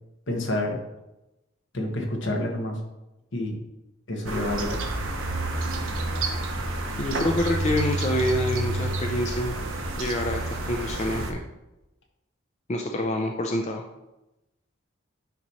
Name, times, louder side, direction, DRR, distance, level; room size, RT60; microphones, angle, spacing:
voice 1, 0.3-0.8 1.7-2.8 3.3-3.6 4.1-4.8, left 1 dB, 70° left, 1 dB, 1.4 m, -28 dB
sound 1, 4.2-11.3, right 2 dB, 85° right, 1.1 m, -29 dB
voice 2, 7.0-9.6 10.0-11.4 12.7-13.8, left 1 dB, 35° left, 2 dB, 0.5 m, -27 dB
9.0 x 3.0 x 5.6 m, 0.96 s
head